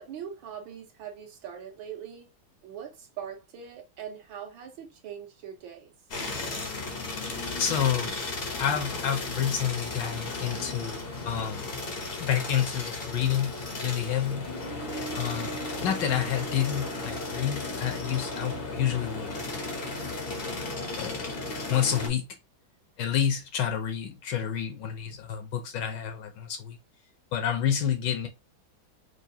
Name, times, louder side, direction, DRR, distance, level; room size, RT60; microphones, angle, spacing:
voice 1, 0.0-2.3 2.6-5.9, right 8 dB, 75° right, 1.7 m, -41 dB
sound 1, 6.1-22.1, left 2 dB, 50° left, 0.7 m, -35 dB
voice 2, 7.3-8.1 8.6-11.7 12.2-14.5 15.2-15.5 15.8-19.8 20.4-20.5 20.9-21.3 21.7-22.2 23.0-26.8 27.3-28.3, left 9 dB, 70° left, 1.3 m, -29 dB
4.8 x 2.5 x 2.7 m
omnidirectional pair, 2.3 m